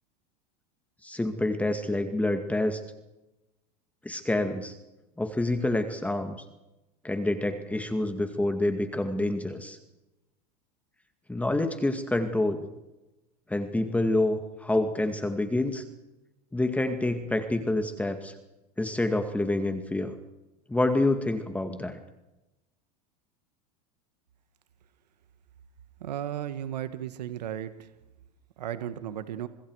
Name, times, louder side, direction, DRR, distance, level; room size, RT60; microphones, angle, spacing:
voice 1, 1.0-2.8 4.0-4.7 5.2-6.4 7.0-9.8 11.3-12.7 13.5-15.8 16.5-18.4 18.8-20.1 20.7-22.0, left 2 dB, 5° left, 7 dB, 2.1 m, -27 dB
voice 2, 26.0-27.9 28.6-29.5, right 11 dB, 90° right, 11 dB, 1.6 m, -35 dB
29.0 x 25.5 x 4.9 m, 0.99 s
hypercardioid pair, 110°, 21 cm